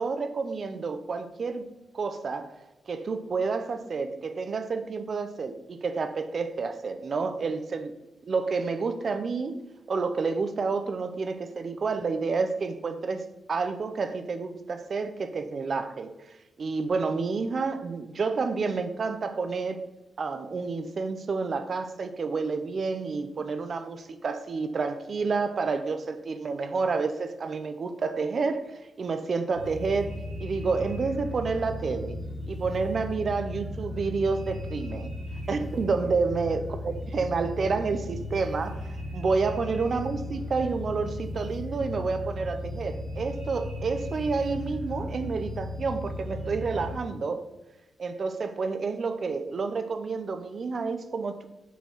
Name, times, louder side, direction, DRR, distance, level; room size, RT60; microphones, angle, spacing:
voice 1, 0.0-1.7 1.9-2.5 2.9-7.9 8.2-9.6 9.9-16.1 16.6-19.8 20.2-32.2 32.5-35.1 35.5-47.4 48.0-51.5, right 4 dB, 40° right, 9 dB, 0.5 m, -29 dB
sound 1, 29.5-46.9, left 1 dB, 75° right, 1.9 m, -36 dB
6.7 x 4.4 x 4.7 m, 1.0 s
wide cardioid pair, 170°, 0 cm